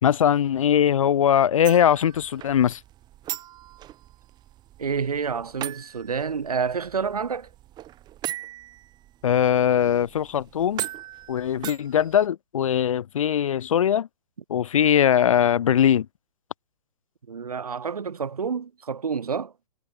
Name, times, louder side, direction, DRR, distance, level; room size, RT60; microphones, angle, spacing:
voice 1, 0.0-2.8 9.2-10.8 11.3-14.1 14.5-16.1, left 9 dB, 60° left, 0.8 m, -21 dB
sound 1, 1.6-12.3, right 13 dB, 20° right, 3.9 m, -39 dB
voice 2, 4.8-7.5 17.3-19.5, right 6 dB, 75° right, 2.6 m, -28 dB
figure-of-eight pair, 130°, 19 cm